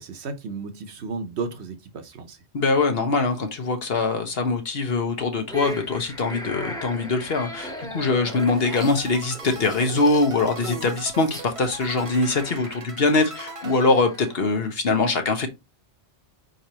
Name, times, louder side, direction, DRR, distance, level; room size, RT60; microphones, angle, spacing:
voice 1, 0.0-2.4, right 4 dB, 65° right, 1.0 m, -33 dB
voice 2, 2.5-15.5, left 3 dB, 55° left, 1.2 m, -23 dB
sound 1, 5.5-14.7, equal, 5° left, 1.0 m, -38 dB
sound 2, 8.4-14.7, right 4 dB, 45° right, 0.5 m, -40 dB
4.8 x 3.9 x 2.8 m
omnidirectional pair, 1.2 m